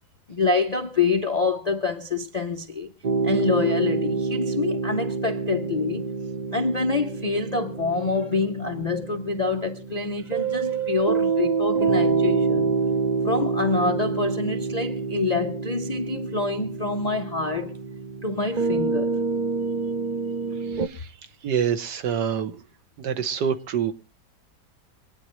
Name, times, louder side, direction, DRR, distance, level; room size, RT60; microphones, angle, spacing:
voice 1, 0.3-2.9 3.2-6.1 6.5-12.7 13.2-17.8 18.2-19.2, left 4 dB, 55° left, 0.4 m, -26 dB
sound 1, 3.0-20.9, right 4 dB, 60° right, 0.4 m, -27 dB
voice 2, 20.7-21.1 21.4-22.5 23.0-23.9, right 8 dB, 85° right, 1.7 m, -26 dB
25.0 x 9.5 x 3.1 m
omnidirectional pair, 1.8 m